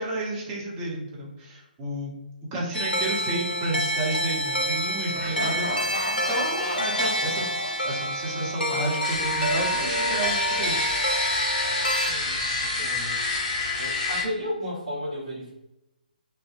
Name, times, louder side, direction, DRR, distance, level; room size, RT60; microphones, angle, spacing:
voice 1, 0.0-2.1 2.5-7.5 7.8-10.8, right 2 dB, 15° right, -4 dB, 0.6 m, -31 dB
sound 1, 2.7-12.1, equal, 85° left, 0.4 m, -28 dB
Laughter, 5.1-9.0, equal, ahead, 1.3 m, -35 dB
sound 2, 9.0-14.2, left 3 dB, 35° left, 0.8 m, -28 dB
voice 2, 12.0-13.2 13.8-15.5, left 1 dB, 45° right, -10 dB, 0.8 m, -34 dB
2.4 x 2.1 x 2.6 m, 0.92 s
figure-of-eight pair, 135°, 5 cm